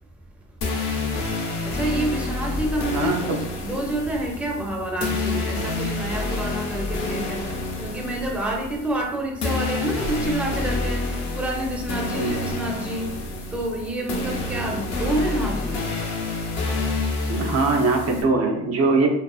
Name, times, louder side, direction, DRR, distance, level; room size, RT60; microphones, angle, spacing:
sound 1, 0.6-18.2, left 3 dB, 60° left, 0.7 m, -28 dB
voice 1, 1.6-7.5 7.8-13.1 13.5-15.9, right 1 dB, 5° right, -1 dB, 0.5 m, -28 dB
voice 2, 2.9-3.4 12.1-12.4 17.3-19.1, right 3 dB, 55° right, 2 dB, 0.5 m, -22 dB
2.4 x 2.4 x 2.3 m, 0.80 s
cardioid pair, 90°, 30 cm